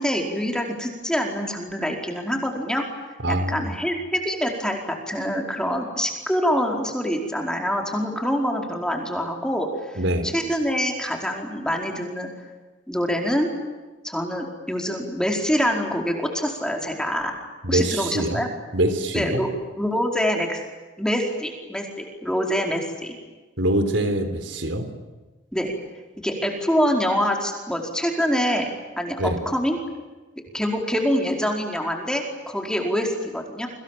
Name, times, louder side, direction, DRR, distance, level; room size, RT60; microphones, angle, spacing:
voice 1, 0.0-2.8 3.3-10.0 10.2-12.3 12.9-13.5 14.0-17.3 17.7-18.5 19.1-19.5 19.8-20.6 21.0-23.1 25.5-25.7 26.2-29.8 30.5-33.7, equal, 5° left, 2 dB, 4.8 m, -25 dB
voice 2, 3.2-3.7 10.0-10.3 17.6-18.4 18.7-19.4 23.6-24.9 29.2-29.4, right 1 dB, 75° right, 9 dB, 4.0 m, -24 dB
29.0 x 25.5 x 7.6 m, 1.2 s
head